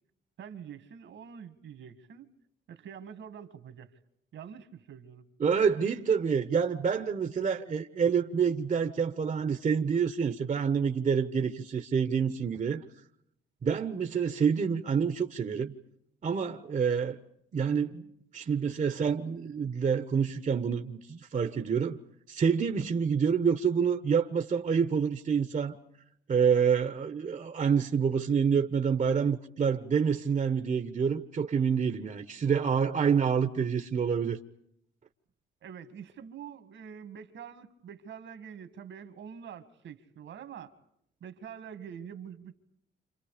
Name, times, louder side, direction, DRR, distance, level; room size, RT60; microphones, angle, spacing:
voice 1, 0.4-2.3 2.7-4.0 4.3-5.2 35.6-40.7 41.2-42.6, right 8 dB, 70° right, 2.2 m, -45 dB
voice 2, 5.4-12.8 13.6-15.7 16.2-17.2 17.5-18.1 18.3-22.0 22.3-25.8 26.3-34.4, right 6 dB, 40° right, 1.2 m, -27 dB
29.5 x 28.0 x 5.1 m
cardioid pair, 90°, 20 cm